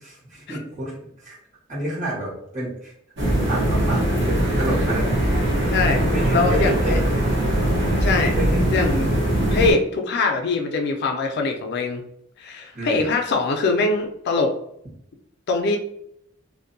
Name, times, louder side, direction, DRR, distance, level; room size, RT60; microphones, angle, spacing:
voice 1, 0.0-1.4 1.7-2.9 3.5-5.3 5.8-7.7 8.4-8.7 12.7-13.1, right 1 dB, 40° right, -6 dB, 1.1 m, -30 dB
sound 1, 3.2-9.7, right 1 dB, 60° right, 0.8 m, -21 dB
voice 2, 5.7-6.0 6.3-7.0 8.0-8.3 8.7-9.1 9.5-12.0 12.4-14.5 15.5-15.8, left 3 dB, 55° left, 3 dB, 0.3 m, -22 dB
2.6 x 2.1 x 2.5 m, 0.73 s
head